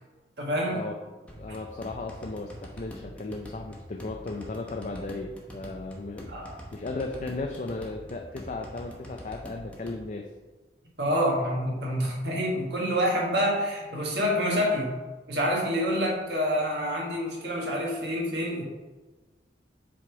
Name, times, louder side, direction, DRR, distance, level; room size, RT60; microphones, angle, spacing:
voice 1, 0.4-0.8 1.5-1.6 6.3-6.5 11.0-14.9 15.3-18.6, equal, 65° right, -2 dB, 1.4 m, -27 dB
sound 1, 1.3-10.0, equal, 5° left, 1.0 m, -45 dB
voice 2, 1.4-6.3 6.7-10.3, left 3 dB, 45° left, 2 dB, 0.5 m, -36 dB
7.5 x 3.5 x 4.7 m, 1.2 s
head